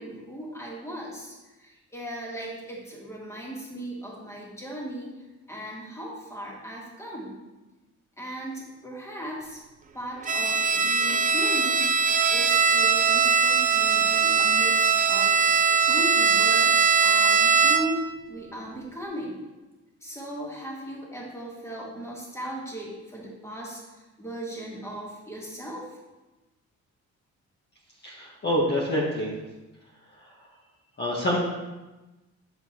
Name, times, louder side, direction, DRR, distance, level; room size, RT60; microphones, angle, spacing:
voice 1, 0.0-5.1 5.5-7.4 8.2-9.6 9.9-11.9 12.3-15.3 15.9-16.7 17.0-19.5 20.0-23.8 24.2-25.8, right 1 dB, 10° left, -4 dB, 1.9 m, -37 dB
Bowed string instrument, 10.3-18.1, right 6 dB, 25° right, 0.5 m, -21 dB
voice 2, 28.0-29.3 31.0-31.4, equal, 35° left, -4 dB, 1.2 m, -26 dB
8.0 x 4.4 x 2.9 m, 1.1 s
cardioid pair, 90°, 30 cm